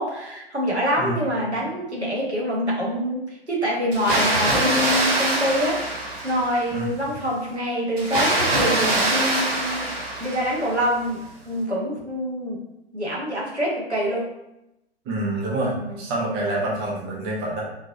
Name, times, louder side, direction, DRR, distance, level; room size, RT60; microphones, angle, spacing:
voice 1, 0.0-5.8 6.2-9.8 10.2-11.2 11.4-12.6 12.9-14.3 15.7-16.0, equal, 85° right, -4 dB, 1.3 m, -25 dB
Water, 3.9-6.7 8.0-10.8, right 1 dB, 55° right, 1.5 m, -23 dB
voice 2, 15.1-17.6, right 1 dB, 15° right, -4 dB, 0.6 m, -27 dB
3.7 x 2.8 x 2.6 m, 0.87 s
figure-of-eight pair, 120°, 32 cm